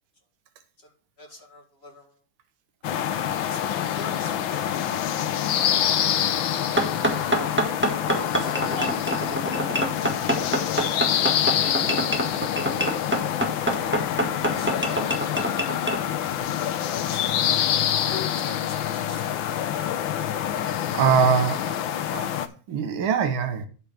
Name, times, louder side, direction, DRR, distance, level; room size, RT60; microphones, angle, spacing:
voice 1, 1.2-2.1 3.4-4.9 5.8-6.0 7.1-7.6 8.0-9.1 11.4-12.0 13.8-14.2 14.4-14.7 16.9-17.2 18.0-19.4 21.6-21.9, left 2 dB, 30° left, 2.3 m, -42 dB
sound 1, 2.8-22.5, left 10 dB, 70° left, 1.5 m, -26 dB
sound 2, 6.8-16.0, right 1 dB, 5° right, 1.2 m, -26 dB
voice 2, 20.9-21.6 22.1-22.3 22.7-23.7, right 6 dB, 70° right, 1.9 m, -22 dB
12.0 x 4.9 x 5.1 m
omnidirectional pair, 2.3 m